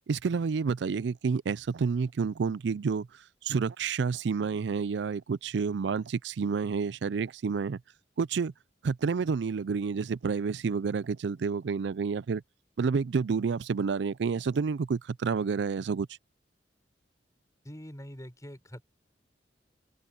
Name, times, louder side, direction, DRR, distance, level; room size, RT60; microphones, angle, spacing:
voice 1, 0.1-3.1 3.4-7.8 8.2-8.5 8.8-12.4 12.8-16.1, right 5 dB, 70° right, 0.4 m, -29 dB
voice 2, 17.6-18.8, equal, 20° left, 4.1 m, -44 dB
head